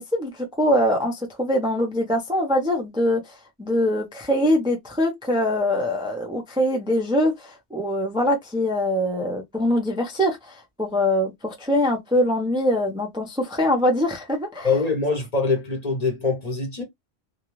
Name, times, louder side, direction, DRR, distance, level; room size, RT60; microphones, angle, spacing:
voice 1, 0.1-3.2 3.6-14.7, left 1 dB, 5° right, 0.5 m, -23 dB
voice 2, 14.6-16.8, left 4 dB, 40° left, 0.9 m, -23 dB
2.4 x 2.3 x 3.1 m
omnidirectional pair, 1.1 m